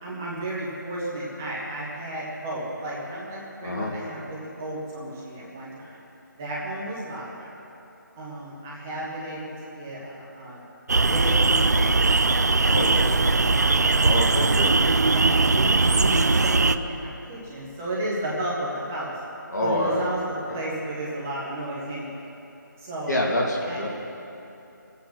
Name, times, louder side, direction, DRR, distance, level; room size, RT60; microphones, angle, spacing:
voice 1, 0.0-6.0 6.3-7.5 8.2-10.6 11.0-12.1 12.6-13.9 14.4-14.9 15.1-19.1 19.6-22.2 22.8-23.2 23.7-23.8, right 1 dB, 5° right, -6 dB, 0.8 m, -33 dB
sound 1, 10.9-16.8, right 3 dB, 55° right, 0.5 m, -20 dB
voice 2, 12.7-13.1 14.0-14.7 19.5-20.0 20.5-20.6 23.1-23.9, left 1 dB, 60° left, -2 dB, 2.5 m, -26 dB
19.5 x 8.4 x 6.3 m, 2.9 s
figure-of-eight pair, 180°, 11 cm